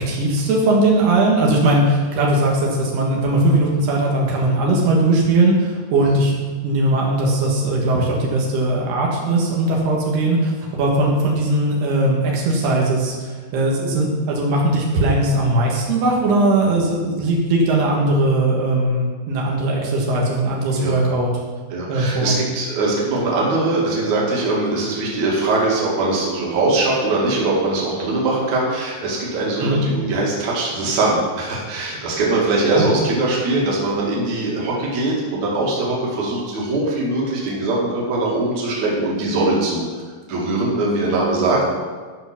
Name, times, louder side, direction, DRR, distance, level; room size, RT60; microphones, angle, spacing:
voice 1, 0.0-6.3 6.6-21.3 21.9-22.4 29.6-29.8 32.7-32.9, right 2 dB, 80° right, -2 dB, 3.5 m, -19 dB
voice 2, 21.7-39.8 40.3-41.7, right 2 dB, 50° right, -4 dB, 3.1 m, -21 dB
12.0 x 5.8 x 6.0 m, 1.5 s
omnidirectional pair, 4.6 m